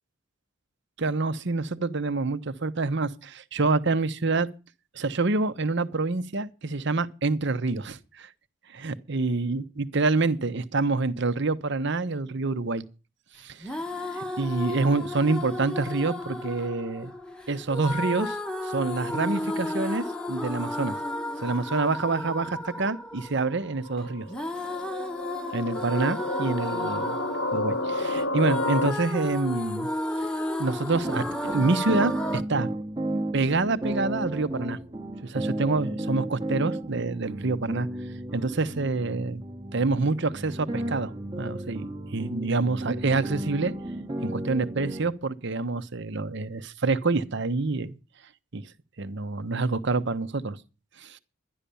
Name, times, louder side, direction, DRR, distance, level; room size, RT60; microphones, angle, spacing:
voice 1, 1.0-4.5 4.9-8.3 8.7-12.8 13.4-13.7 14.1-17.1 17.5-18.4 18.6-21.0 21.4-24.3 25.5-27.2 27.5-29.9 30.2-30.3 30.6-32.7 33.3-34.8 35.2-37.9 38.3-39.4 39.7-43.7 44.2-48.0 48.5-48.6 49.0-50.6 51.0-51.2, right 3 dB, 55° right, 0.9 m, -27 dB
sound 1, 13.6-32.4, left 1 dB, 5° left, 0.8 m, -33 dB
sound 2, 23.8-28.9, left 1 dB, 65° left, 1.0 m, -31 dB
sound 3, 30.9-45.1, right 1 dB, 20° right, 1.0 m, -34 dB
11.5 x 11.5 x 6.9 m
head